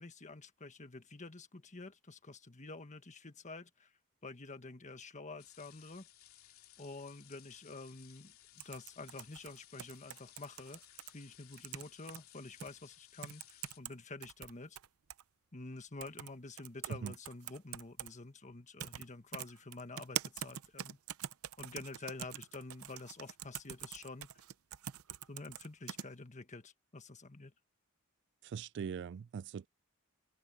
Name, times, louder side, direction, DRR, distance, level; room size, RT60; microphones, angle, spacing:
voice 1, 0.0-3.9 4.2-6.1 6.8-14.8 15.5-21.0 21.6-24.4 25.3-27.5, left 3 dB, 35° left, 1.5 m, -49 dB
sound 1, 5.4-13.8, left 13 dB, 75° left, 2.9 m, -60 dB
sound 2, 8.6-11.1 11.5-12.2 12.6-12.7 13.2-13.9 14.2-15.2 16.0-16.3 16.6-18.1 18.8-19.0 19.3-26.1, right 10 dB, 85° right, 0.7 m, -43 dB
voice 2, 28.4-29.7, right 7 dB, 55° right, 0.3 m, -41 dB
head